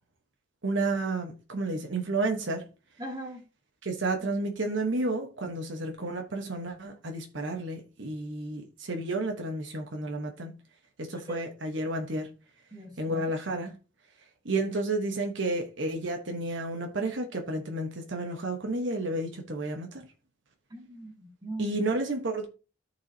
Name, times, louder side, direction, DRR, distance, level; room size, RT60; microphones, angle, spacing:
voice 1, 0.6-2.6 3.8-10.5 11.0-12.3 13.0-13.7 14.4-20.0 21.6-22.5, right 2 dB, 70° right, 1.2 m, -31 dB
voice 2, 3.0-3.4 11.3-11.5 12.7-13.2 20.7-21.8, right 1 dB, 20° right, 1.9 m, -40 dB
13.5 x 4.7 x 2.8 m
head